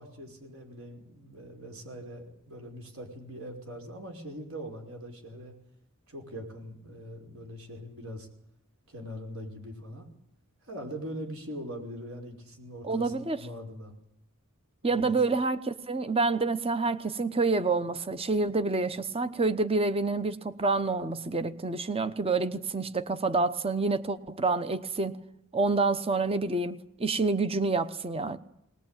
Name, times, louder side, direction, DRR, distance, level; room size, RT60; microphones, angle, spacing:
voice 1, 0.0-5.5 6.1-8.3 8.9-10.1 10.6-14.0 14.8-15.1, equal, 65° right, 5.4 m, -42 dB
voice 2, 12.8-13.4 14.8-25.2 25.5-28.4, right 3 dB, 25° right, 0.9 m, -28 dB
21.0 x 20.0 x 9.0 m
head